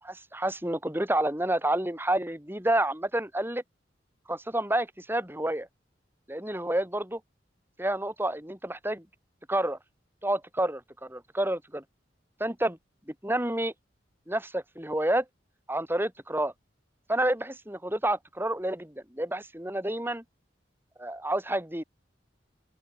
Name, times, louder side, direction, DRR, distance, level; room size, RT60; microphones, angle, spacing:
voice 1, 0.0-3.6 4.3-5.7 6.3-7.2 7.8-9.0 9.5-9.8 10.2-11.8 12.4-12.8 13.2-13.7 14.3-15.2 15.7-16.5 17.1-20.2 21.0-21.8, right 1 dB, 10° right, 5.2 m, -29 dB
open air
head